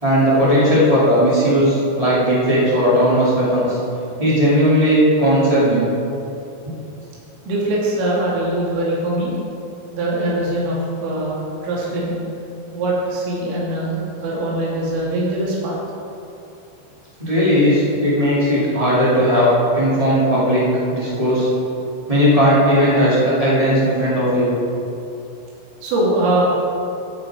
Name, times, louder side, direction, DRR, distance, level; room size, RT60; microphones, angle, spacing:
voice 1, 0.0-3.7 4.2-5.9 17.2-20.6 20.9-21.5 22.1-24.5, equal, 40° right, -8 dB, 0.5 m, -16 dB
voice 2, 7.5-9.3 9.9-12.2 12.7-14.0 14.2-15.8 25.8-26.4, right 1 dB, 85° right, -5 dB, 5.0 m, -22 dB
15.5 x 6.8 x 4.9 m, 2.7 s
omnidirectional pair, 5.7 m